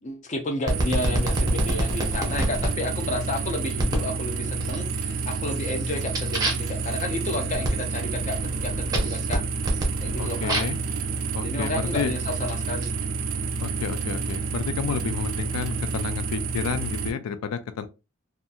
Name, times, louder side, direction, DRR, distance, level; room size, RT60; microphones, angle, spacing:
voice 1, 0.0-9.4 10.0-10.6 11.4-12.9, left 2 dB, 35° left, 0.5 m, -31 dB
sound 1, 0.7-2.7 3.8-4.1 4.6-5.1 5.5-10.9 11.6-12.9, right 1 dB, 15° right, 0.7 m, -28 dB
sound 2, 0.7-17.1, right 4 dB, 70° right, 0.4 m, -29 dB
voice 2, 10.2-10.8 11.3-12.1 13.6-17.9, left 7 dB, 90° left, 0.4 m, -31 dB
2.8 x 2.4 x 2.4 m
head